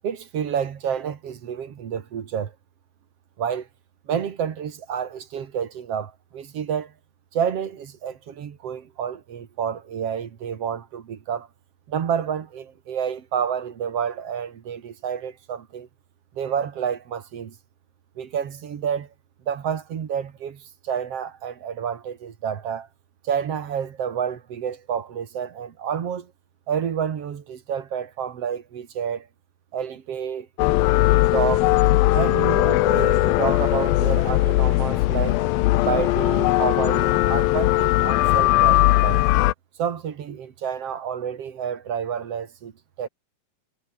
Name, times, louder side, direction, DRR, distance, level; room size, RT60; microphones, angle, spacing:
voice 1, 0.0-2.5 3.4-3.7 4.1-6.9 7.3-11.5 11.9-15.9 16.4-17.5 18.2-19.1 19.5-22.9 23.2-26.3 26.7-29.3 29.7-30.5 31.1-31.7 32.1-35.4 35.8-39.2 39.8-42.7 43.0-43.1, right 8 dB, 50° right, 2.1 m, -29 dB
sound 1, 30.6-39.5, left 17 dB, 75° left, 2.3 m, -19 dB
omnidirectional pair, 4.9 m